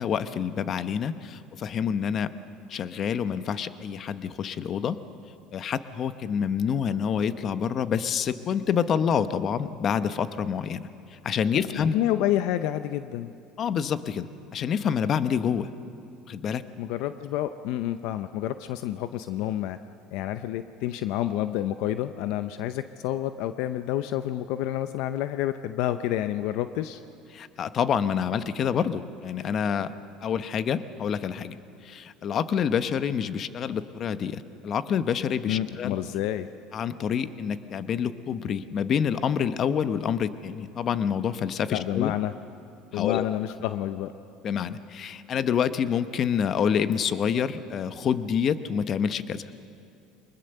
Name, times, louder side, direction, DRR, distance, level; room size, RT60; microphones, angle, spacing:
voice 1, 0.0-2.3 2.7-5.0 5.5-10.8 11.1-12.0 13.6-15.7 16.3-16.6 27.3-29.9 30.2-31.6 31.8-36.0 36.7-42.1 42.9-43.2 44.4-49.4, left 7 dB, 45° left, 12 dB, 0.9 m, -27 dB
voice 2, 11.8-13.3 16.8-19.8 20.1-27.0 35.5-36.5 41.7-42.3 42.9-44.1, left 13 dB, 75° left, 11 dB, 0.6 m, -29 dB
23.5 x 20.5 x 6.8 m, 2.5 s
supercardioid pair, 100°, 0 cm